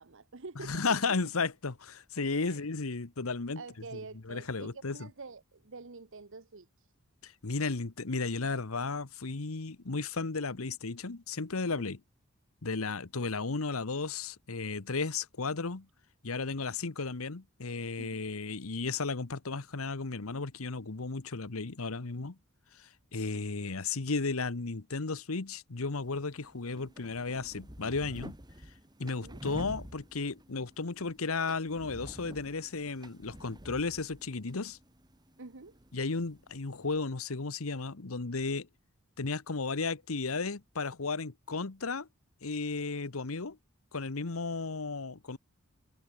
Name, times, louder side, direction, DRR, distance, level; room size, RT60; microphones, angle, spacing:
voice 1, 0.0-1.3 2.4-2.6 3.6-6.9 11.8-11.9 13.2-13.3 18.0-18.2 23.3-23.4 29.0-29.4 35.4-35.8, right 3 dB, 65° right, 1.1 m, -47 dB
voice 2, 0.6-3.6 3.9-4.0 4.2-5.1 7.2-12.0 12.6-15.9 16.2-22.4 22.8-28.4 29.0-34.8 35.9-38.7 39.2-42.1 42.4-43.6 43.9-45.4, left 4 dB, 85° left, 1.2 m, -34 dB
sound 1, 25.9-37.0, equal, 20° right, 4.0 m, -49 dB
head